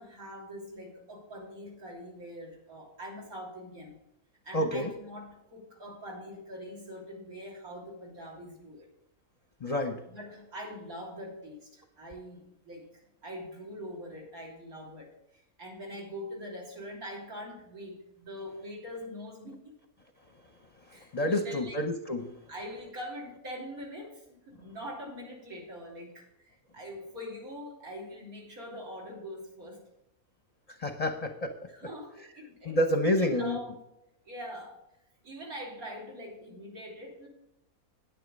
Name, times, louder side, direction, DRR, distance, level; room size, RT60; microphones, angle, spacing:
voice 1, 0.0-4.0 4.4-8.9 10.1-19.6 20.9-21.8 22.5-29.9 31.7-33.8 34.3-34.8 35.2-37.3, equal, 70° right, -2 dB, 3.7 m, -43 dB
voice 2, 4.5-4.9 9.6-10.0 21.1-22.3 30.8-31.5 32.7-33.6, left 1 dB, 35° left, 6 dB, 0.7 m, -28 dB
9.9 x 9.2 x 5.3 m, 0.85 s
omnidirectional pair, 1.6 m